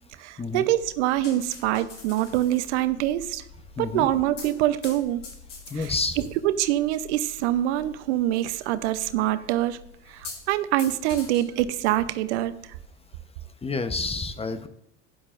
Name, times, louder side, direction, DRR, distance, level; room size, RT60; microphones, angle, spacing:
voice 1, 0.2-3.4 3.8-5.2 5.7-9.8 10.1-12.6, right 13 dB, 70° right, 13 dB, 0.8 m, -25 dB
sound 1, 0.7-13.1, left 4 dB, 90° left, 2.3 m, -46 dB
voice 2, 3.8-4.1 5.7-6.2 13.6-14.7, left 3 dB, 15° left, 10 dB, 0.9 m, -29 dB
12.5 x 10.5 x 2.5 m, 0.79 s
hypercardioid pair, 75°, 35 cm